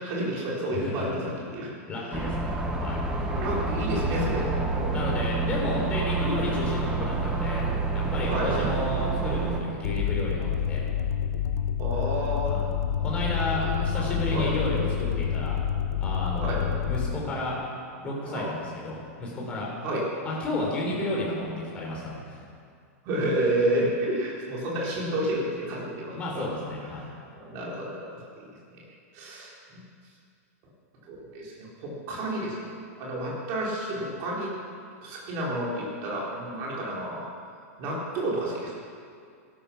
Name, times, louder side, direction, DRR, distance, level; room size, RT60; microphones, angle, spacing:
voice 1, 0.0-1.7 3.3-5.1 8.3-8.7 11.8-12.5 13.4-14.1 14.3-14.7 16.4-16.6 18.3-18.5 19.8-20.1 23.0-26.5 26.8-28.8 29.1-29.8 31.1-32.7 33.0-34.5 35.0-37.3 37.8-38.7, right 1 dB, 30° right, -4 dB, 4.2 m, -30 dB
voice 2, 0.7-1.1 1.9-2.5 2.8-3.0 4.9-7.7 7.9-10.8 12.4-12.6 13.0-15.6 16.0-17.6 18.0-18.6 18.8-19.7 20.2-21.5 21.7-22.4 26.1-27.1, left 1 dB, 15° left, -3 dB, 3.8 m, -32 dB
sound 1, 2.1-9.6, right 3 dB, 10° right, 1.1 m, -28 dB
sound 2, 9.8-17.1, left 8 dB, 75° left, 0.9 m, -28 dB
16.5 x 12.5 x 5.9 m, 2.2 s
supercardioid pair, 170°, 8 cm